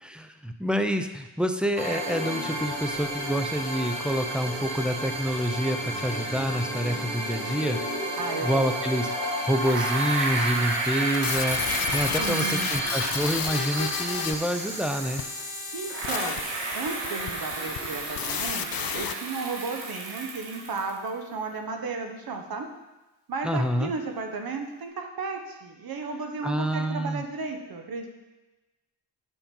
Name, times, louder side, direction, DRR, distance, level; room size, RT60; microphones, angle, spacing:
voice 1, 0.0-8.0 8.4-9.1 9.4-11.6 11.9-15.2 23.4-23.9 26.4-27.2, equal, ahead, 6 dB, 0.6 m, -27 dB
sound 1, 1.8-20.2, right 1 dB, 35° right, 3.0 m, -33 dB
voice 2, 8.2-8.8 12.2-12.7 15.7-16.4 16.7-22.7 23.3-28.1, right 4 dB, 55° right, 4 dB, 1.3 m, -34 dB
Bicycle, 9.6-15.4 15.8-21.1, right 3 dB, 70° right, 1.8 m, -33 dB
sound 2, 11.1-19.1, left 10 dB, 55° left, 0.5 m, -33 dB
7.4 x 5.3 x 5.4 m, 1.1 s
cardioid pair, 90°, 44 cm